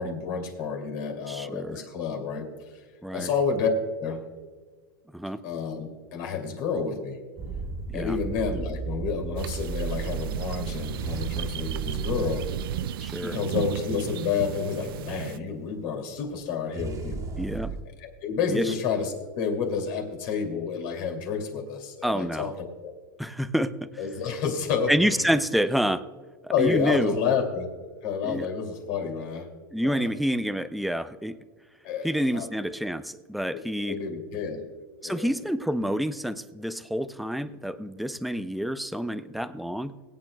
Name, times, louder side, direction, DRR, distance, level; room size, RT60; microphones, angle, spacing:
voice 1, 0.0-2.5 3.1-3.7 4.0-4.2 5.4-7.2 7.9-12.5 13.2-17.2 18.0-22.5 22.8-22.9 24.0-24.9 26.5-27.7 28.0-29.5 29.8-30.1 31.8-32.5 33.8-34.6 35.0-35.3, left 6 dB, 55° left, 3 dB, 2.6 m, -29 dB
voice 2, 1.3-1.8 3.0-3.3 5.1-5.4 7.9-8.2 13.0-13.4 17.4-17.7 18.5-18.7 22.0-22.5 23.2-23.7 24.9-26.0 26.4-27.1 28.2-28.5 29.7-31.4 32.0-34.0 35.0-40.0, equal, ahead, 12 dB, 0.4 m, -28 dB
sound 1, 7.4-15.2 16.7-17.8, right 4 dB, 25° right, 1.6 m, -35 dB
sound 2, 9.4-15.4, right 11 dB, 75° right, 0.4 m, -34 dB
23.5 x 8.7 x 2.3 m, 1.4 s
supercardioid pair, 135°, 12 cm